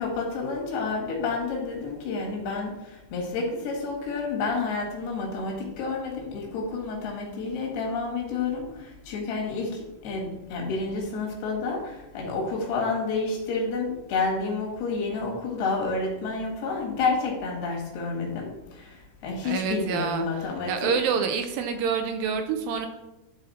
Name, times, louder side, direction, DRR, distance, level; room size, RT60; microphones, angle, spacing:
voice 1, 0.0-20.9, left 4 dB, 90° left, -1 dB, 3.9 m, -30 dB
voice 2, 19.4-22.9, right 6 dB, 80° right, 7 dB, 2.2 m, -27 dB
11.5 x 4.2 x 4.2 m, 0.98 s
omnidirectional pair, 4.5 m